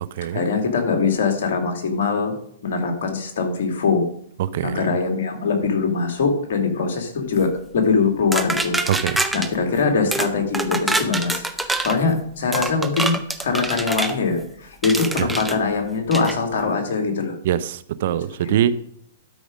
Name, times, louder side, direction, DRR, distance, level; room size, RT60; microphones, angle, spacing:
voice 1, 0.3-2.3 2.6-4.1 4.6-8.8 9.0-11.4 11.8-17.4 18.4-18.6, left 4 dB, 65° left, 4 dB, 2.5 m, -22 dB
voice 2, 4.4-4.8 8.9-9.2 15.2-15.3 17.4-18.7, right 11 dB, 60° right, 15 dB, 0.6 m, -23 dB
sound 1, 8.3-9.5 10.1-10.3 10.5-12.0 12.5-14.2 14.8-15.6 16.1-16.4, right 2 dB, 5° right, 0.7 m, -25 dB
12.5 x 5.1 x 5.1 m, 0.70 s
hypercardioid pair, 125°, 0 cm